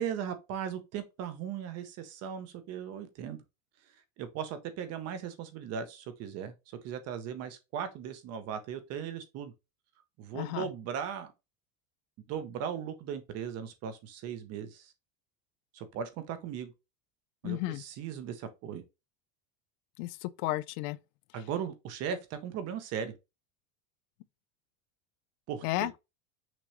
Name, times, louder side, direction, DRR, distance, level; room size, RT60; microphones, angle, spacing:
voice 1, 0.0-3.4 4.2-9.5 10.2-11.3 12.3-14.9 15.7-16.7 17.4-18.8 21.3-23.1 25.5-25.9, right 8 dB, 35° right, 0.7 m, -38 dB
voice 2, 10.3-10.7 17.4-17.8 20.0-21.0 25.6-25.9, left 17 dB, 75° left, 0.6 m, -33 dB
6.0 x 3.0 x 2.9 m
cardioid pair, 170°, 44 cm